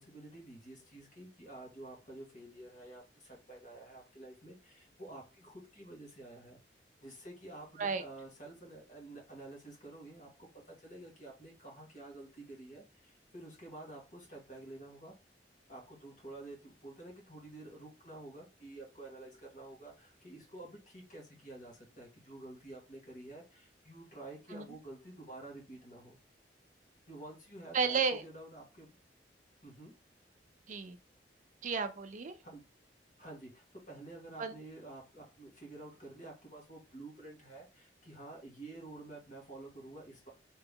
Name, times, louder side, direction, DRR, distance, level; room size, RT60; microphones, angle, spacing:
voice 1, 0.0-6.6 7.0-15.1 15.7-26.2 27.1-29.0 29.6-29.9 32.4-32.6 33.2-40.3, right 2 dB, 45° left, 1.9 m, -50 dB
voice 2, 27.7-28.2 30.7-31.0 31.6-32.4 34.4-34.5, right 5 dB, 45° right, 0.4 m, -32 dB
3.4 x 2.9 x 3.6 m
head